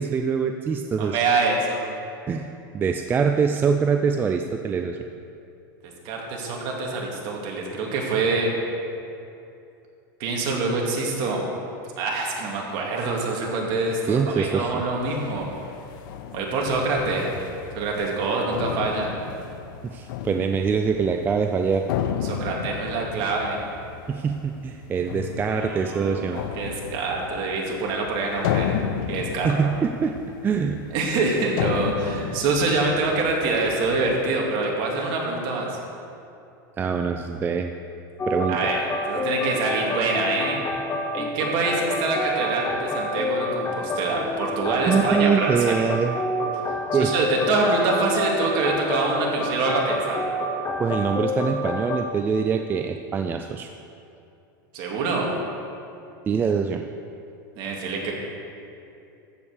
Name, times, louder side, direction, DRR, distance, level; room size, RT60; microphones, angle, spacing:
voice 1, 0.0-1.2 2.3-2.5 2.7-5.0 14.1-14.8 19.9-21.8 24.1-26.4 29.4-30.1 30.4-30.8 36.8-37.7 38.3-38.6 44.9-46.1 46.9-47.1 50.8-53.7 56.3-56.8, right 6 dB, 15° right, 5 dB, 0.4 m, -24 dB
voice 2, 1.0-1.8 6.0-8.5 10.2-11.4 12.0-15.5 16.3-17.3 17.7-19.1 22.2-23.6 25.4-28.7 29.1-29.5 30.5-30.6 30.9-35.8 38.5-40.6 41.1-45.8 47.0-50.2 54.7-55.3 57.6-58.1, right 3 dB, 50° right, -1 dB, 2.3 m, -25 dB
sound 1, 14.4-34.3, left 9 dB, 65° left, 0.7 m, -34 dB
sound 2, 38.2-52.1, left 1 dB, 15° left, 0.6 m, -28 dB
14.0 x 5.4 x 6.5 m, 2.7 s
supercardioid pair, 145°, 11 cm